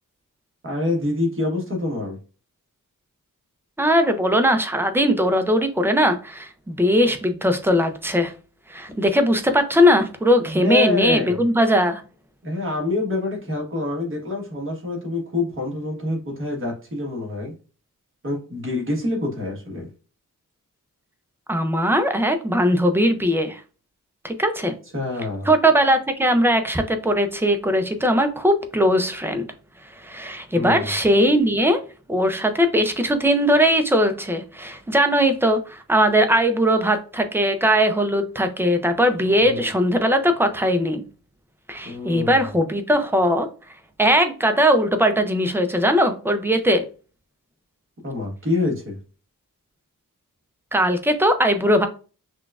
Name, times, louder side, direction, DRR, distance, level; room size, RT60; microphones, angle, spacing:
voice 1, 0.6-2.2 10.4-11.4 12.4-17.5 18.2-19.9 24.9-25.5 30.5-30.9 39.2-39.7 41.8-42.5 48.0-49.0, left 2 dB, 40° right, 0 dB, 1.2 m, -26 dB
voice 2, 3.8-8.3 8.7-12.0 21.5-23.6 24.2-24.7 25.5-29.5 30.0-31.8 32.1-41.0 41.7-43.5 44.0-46.8 50.7-51.9, equal, 5° right, 7 dB, 0.4 m, -19 dB
5.9 x 2.3 x 2.3 m, 0.36 s
wide cardioid pair, 165°, 33 cm